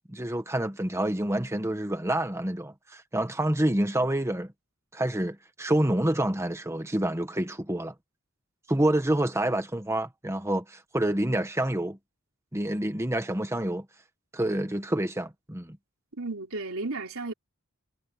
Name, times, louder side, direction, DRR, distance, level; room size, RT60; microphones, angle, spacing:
voice 1, 0.1-4.5 4.9-7.9 8.7-12.0 12.5-13.8 14.3-15.8, right 1 dB, 15° right, 1.3 m, -27 dB
voice 2, 16.2-17.3, right 3 dB, 75° right, 3.3 m, -33 dB
head